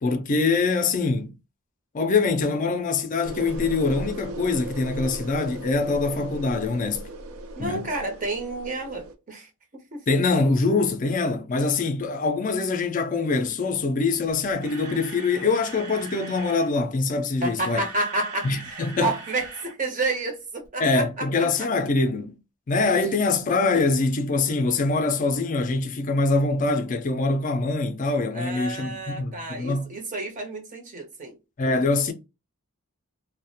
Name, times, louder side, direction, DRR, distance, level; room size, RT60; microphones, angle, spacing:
voice 1, 0.0-1.3 1.9-7.0 7.6-7.9 10.1-17.8 18.4-19.1 20.8-22.4 22.7-29.9 31.6-32.1, left 3 dB, 35° left, 0.4 m, -24 dB
sound 1, 3.2-9.1, right 1 dB, 70° right, 0.4 m, -37 dB
voice 2, 7.6-10.1 17.4-21.5 28.3-31.3, right 2 dB, 35° right, 0.7 m, -30 dB
Camera, 14.3-16.7 17.5-19.8 20.0-20.2 20.6-20.7, right 4 dB, 85° right, 0.9 m, -41 dB
2.3 x 2.1 x 2.7 m
head